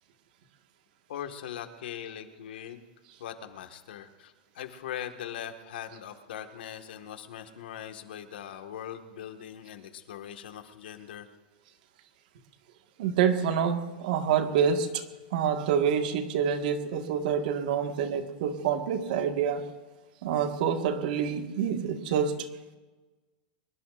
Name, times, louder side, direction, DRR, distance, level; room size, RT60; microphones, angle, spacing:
voice 1, 1.1-2.8 3.2-11.3, left 10 dB, 85° left, 5 dB, 1.7 m, -41 dB
voice 2, 13.0-15.0 15.3-19.6 20.2-22.5, right 7 dB, 55° right, 5 dB, 1.7 m, -27 dB
24.5 x 22.0 x 2.6 m, 1.2 s
supercardioid pair, 170°, 5 cm